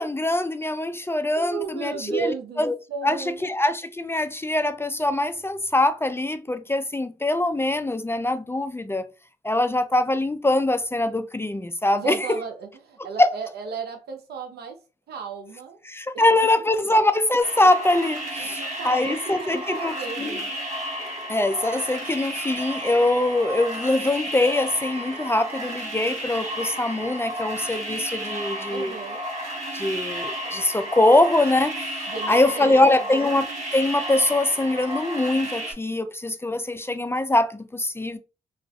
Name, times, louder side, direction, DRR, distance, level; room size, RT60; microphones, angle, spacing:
voice 1, 0.0-2.7 3.0-9.0 9.4-12.4 13.2-13.3 15.9-20.4 21.3-28.9 29.7-31.8 32.3-33.5 33.7-38.2, left 2 dB, 15° left, 0.3 m, -23 dB
voice 2, 1.4-3.4 12.0-14.8 15.1-15.8 16.1-16.2 18.4-20.6 28.7-29.2 32.1-33.0, right 5 dB, 85° right, 0.6 m, -35 dB
sound 1, 17.4-35.7, equal, 45° right, 1.0 m, -32 dB
2.4 x 2.4 x 2.2 m
cardioid pair, 50°, 16 cm